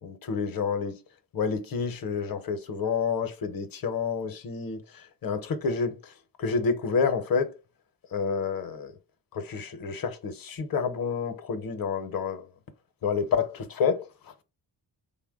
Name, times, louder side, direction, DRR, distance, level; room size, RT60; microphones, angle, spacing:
voice 1, 0.0-1.0 1.3-6.1 6.4-7.5 8.1-8.9 9.3-12.4 13.0-14.1, left 5 dB, 50° left, 0.7 m, -29 dB
3.3 x 2.1 x 3.5 m
cardioid pair, 90°, 45 cm